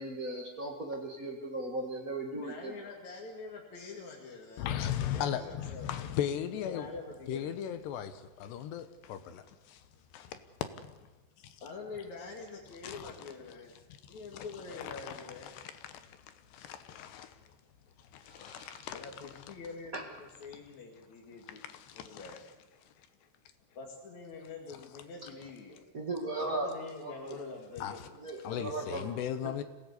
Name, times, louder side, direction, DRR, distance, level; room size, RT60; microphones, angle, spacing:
voice 1, 0.0-2.7 18.3-18.8 19.9-20.0 25.9-26.7 27.0-27.3 28.2-29.1 29.4-29.6, right 2 dB, 75° right, 0.7 m, -37 dB
voice 2, 2.3-4.7 5.2-6.0 6.6-7.6 11.6-13.8 14.1-15.6 18.9-21.6 21.9-22.4 23.7-25.8 26.3-28.1 28.4-29.1, left 4 dB, 45° left, 3.1 m, -45 dB
voice 3, 4.6-5.4 5.9-6.8 7.3-8.1 8.4-9.4 16.7-17.3 18.4-18.8 27.8-27.9 28.4-29.6, left 10 dB, 75° left, 3.0 m, -35 dB
26.5 x 17.5 x 8.3 m
omnidirectional pair, 5.2 m